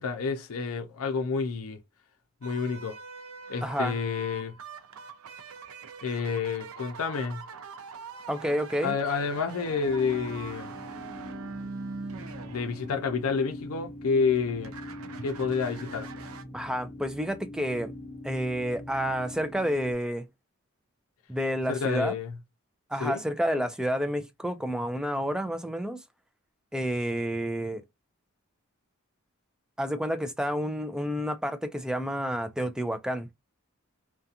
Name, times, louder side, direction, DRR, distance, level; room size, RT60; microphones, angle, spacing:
voice 1, 0.0-1.8 2.4-3.0 3.5-4.5 6.0-7.4 8.8-10.7 12.5-14.7 15.2-16.1 21.7-22.4 23.0-23.2, left 5 dB, 85° left, 0.5 m, -29 dB
sound 1, 2.4-13.8 14.3-16.4, right 4 dB, 80° right, 0.5 m, -43 dB
voice 2, 3.6-3.9 8.3-8.9 16.5-17.9 18.2-20.3 21.3-22.1 22.9-26.0 26.7-27.8 29.8-33.3, equal, 5° right, 0.3 m, -29 dB
sound 2, 9.8-19.9, left 1 dB, 30° left, 0.8 m, -42 dB
2.4 x 2.2 x 2.7 m
head